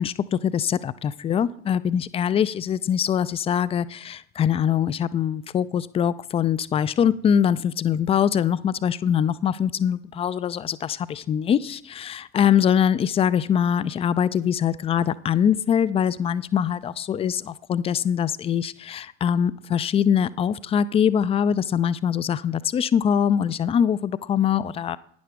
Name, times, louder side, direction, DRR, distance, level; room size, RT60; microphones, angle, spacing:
voice 1, 0.0-25.0, left 8 dB, 20° left, 0.3 m, -23 dB
11.0 x 10.0 x 3.5 m
figure-of-eight pair, 65°, 34 cm